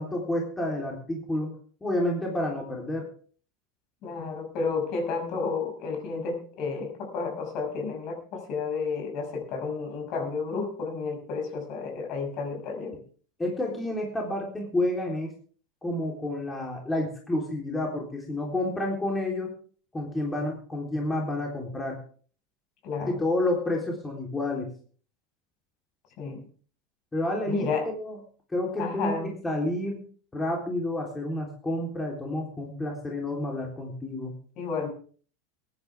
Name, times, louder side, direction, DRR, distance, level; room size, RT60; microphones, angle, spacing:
voice 1, 0.0-1.5 1.8-3.1 13.4-15.3 15.8-19.5 19.9-22.0 23.1-24.7 27.1-27.7 28.0-28.2 28.5-29.2 29.4-30.0 30.3-34.3, left 1 dB, 15° left, -1 dB, 3.6 m, -29 dB
voice 2, 4.0-12.9 22.8-23.2 26.2-26.4 27.5-27.9 28.8-29.3 34.6-34.9, left 4 dB, 50° left, 3 dB, 6.3 m, -31 dB
22.0 x 10.5 x 3.5 m, 0.44 s
hypercardioid pair, 85°, 0 cm